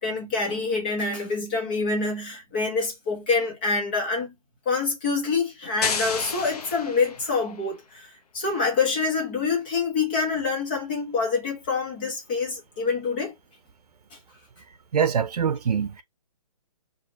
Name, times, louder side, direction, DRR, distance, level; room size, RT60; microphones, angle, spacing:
voice 1, 0.0-4.3 4.6-8.1 8.3-13.3, left 4 dB, 15° left, 1.1 m, -26 dB
sound 1, 5.8-7.6, left 5 dB, 75° left, 1.0 m, -31 dB
voice 2, 14.9-16.0, right 7 dB, 85° right, 0.6 m, -24 dB
5.1 x 2.5 x 2.8 m
hypercardioid pair, 175°, 20 cm